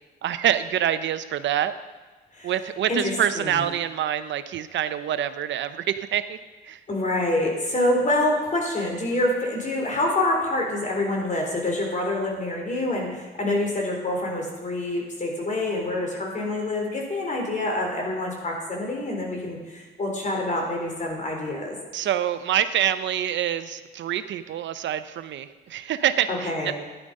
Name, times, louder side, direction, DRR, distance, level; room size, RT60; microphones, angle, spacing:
voice 1, 0.2-1.7 2.4-6.4 6.6-6.8 21.9-26.7, right 10 dB, 70° right, 12 dB, 0.7 m, -26 dB
voice 2, 2.9-3.7 6.9-21.8 26.3-26.7, left 1 dB, 40° left, 0 dB, 4.0 m, -26 dB
12.0 x 10.5 x 5.4 m, 1.3 s
cardioid pair, 90°, 20 cm